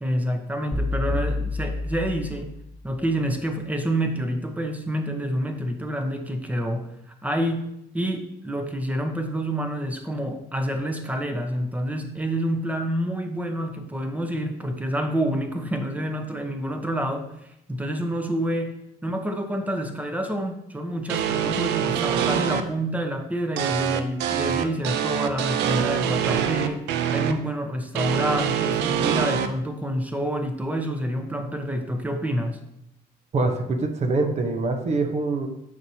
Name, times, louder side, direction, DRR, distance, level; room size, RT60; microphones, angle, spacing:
voice 1, 0.0-2.5 2.8-7.7 7.9-18.8 19.0-32.6, equal, 10° right, 5 dB, 0.8 m, -28 dB
sound 1, 0.7-2.8, left 2 dB, 10° left, 1.6 m, -28 dB
sound 2, 21.1-22.6 23.6-27.3 28.0-29.5, right 9 dB, 90° right, 0.5 m, -24 dB
voice 2, 33.3-35.5, right 3 dB, 40° right, 5 dB, 0.9 m, -24 dB
8.0 x 5.9 x 2.8 m, 0.80 s
cardioid pair, 110°, 17 cm